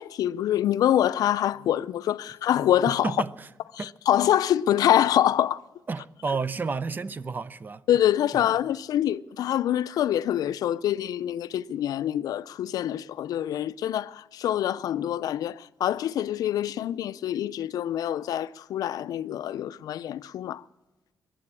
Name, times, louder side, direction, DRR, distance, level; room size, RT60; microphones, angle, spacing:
voice 1, 0.0-3.1 3.7-5.6 7.9-20.6, left 11 dB, 75° left, 0.4 m, -25 dB
voice 2, 2.9-3.5 3.8-3.9 5.9-7.8 8.3-8.5, right 4 dB, 30° right, 0.5 m, -31 dB
22.0 x 7.6 x 8.4 m
cardioid pair, 120°, 6 cm